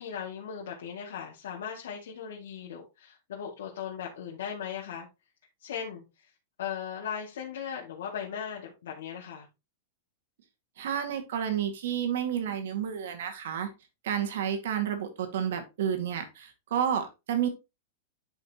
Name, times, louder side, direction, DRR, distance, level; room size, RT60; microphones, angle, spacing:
voice 1, 0.0-5.1 5.6-6.0 6.6-9.5, left 8 dB, 80° left, 2.2 m, -38 dB
voice 2, 10.8-13.7 14.0-17.5, right 9 dB, 70° right, 2.0 m, -30 dB
10.5 x 5.2 x 3.0 m
supercardioid pair, 165°, 0 cm